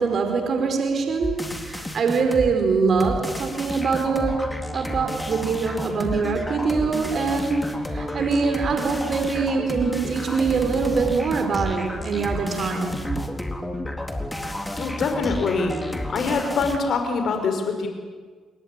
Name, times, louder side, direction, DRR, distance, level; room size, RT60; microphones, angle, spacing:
voice 1, 0.0-12.9, right 5 dB, 55° right, 5 dB, 4.8 m, -24 dB
sound 1, 1.2-2.5 3.0-16.8, left 1 dB, 10° left, 4.0 m, -31 dB
voice 2, 14.8-15.7 16.1-17.9, left 4 dB, 60° left, 5 dB, 5.4 m, -24 dB
27.0 x 22.5 x 9.2 m, 1.5 s
hypercardioid pair, 45°, 0 cm